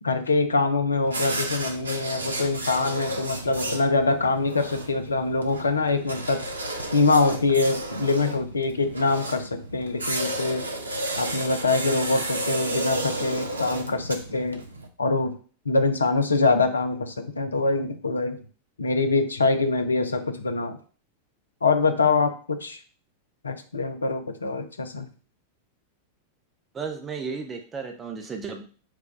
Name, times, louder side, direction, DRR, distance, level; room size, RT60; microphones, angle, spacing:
voice 1, 0.0-6.4 6.9-10.6 11.2-14.6 15.0-15.3 15.7-18.4 18.8-20.8 21.6-22.8 23.4-25.1, left 3 dB, 75° left, 8 dB, 0.5 m, -24 dB
sound 1, 1.0-14.9, right 1 dB, 80° right, 0.5 m, -32 dB
voice 2, 26.7-28.7, right 5 dB, 20° right, 4 dB, 0.6 m, -34 dB
4.8 x 2.3 x 4.7 m, 0.39 s
figure-of-eight pair, 90°, 0 cm